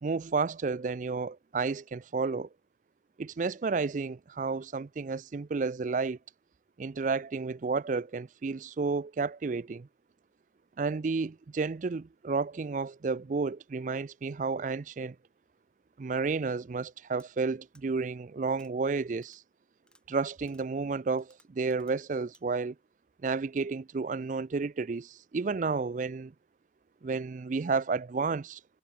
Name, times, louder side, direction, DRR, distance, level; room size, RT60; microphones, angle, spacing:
voice 1, 0.0-2.5 3.2-6.2 6.8-9.9 10.8-15.2 16.0-19.4 20.1-22.7 23.2-26.3 27.0-28.6, right 4 dB, 45° right, 0.4 m, -31 dB
sound 1, 17.2-17.3 17.7-17.8 18.5-18.7 19.2-19.4 19.8-20.0 20.5-20.7 21.2-22.0 22.3-22.4, left 2 dB, 5° left, 6.8 m, -64 dB
head